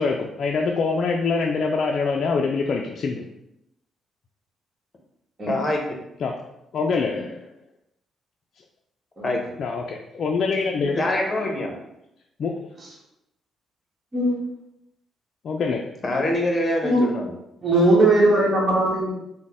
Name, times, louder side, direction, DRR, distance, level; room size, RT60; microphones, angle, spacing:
voice 1, 0.0-3.3 6.2-7.4 9.6-11.0 12.4-12.7 15.4-15.9, left 4 dB, 55° left, 1 dB, 0.3 m, -25 dB
voice 2, 5.5-6.0 9.2-9.4 11.0-11.7 16.0-17.3, left 1 dB, 30° left, 1 dB, 0.8 m, -24 dB
voice 3, 17.6-19.1, right 1 dB, 35° right, -5 dB, 1.1 m, -19 dB
3.9 x 2.1 x 3.5 m, 0.83 s
cardioid pair, 90°, 0 cm